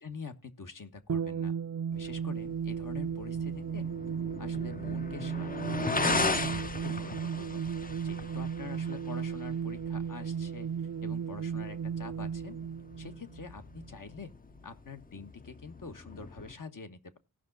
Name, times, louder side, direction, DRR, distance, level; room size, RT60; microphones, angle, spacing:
voice 1, 0.0-1.5 1.9-3.9 4.4-7.6 8.0-10.7 11.0-12.6 13.0-14.3 14.6-17.2, left 4 dB, 65° left, 8 dB, 1.4 m, -46 dB
sound 1, 1.1-13.9, right 7 dB, 50° right, 0.5 m, -35 dB
sound 2, 1.9-16.5, left 3 dB, 25° left, 0.6 m, -38 dB
17.0 x 5.9 x 3.9 m, 0.27 s
wide cardioid pair, 70°, 35 cm